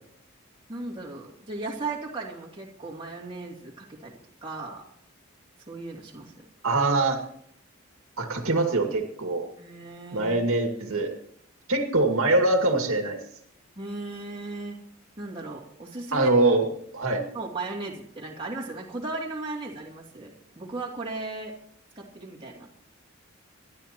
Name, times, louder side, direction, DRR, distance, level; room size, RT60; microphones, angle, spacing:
voice 1, 0.7-4.1 4.4-4.9 5.7-6.4 9.6-10.5 13.8-14.8 15.2-16.3 17.3-21.5 21.9-22.7, right 3 dB, 25° right, -2 dB, 2.7 m, -36 dB
voice 2, 6.6-7.2 8.2-9.5 10.1-11.1 11.7-13.2 16.1-16.7 16.9-17.2, right 2 dB, 80° right, 3 dB, 2.2 m, -23 dB
26.5 x 12.0 x 3.0 m, 0.67 s
head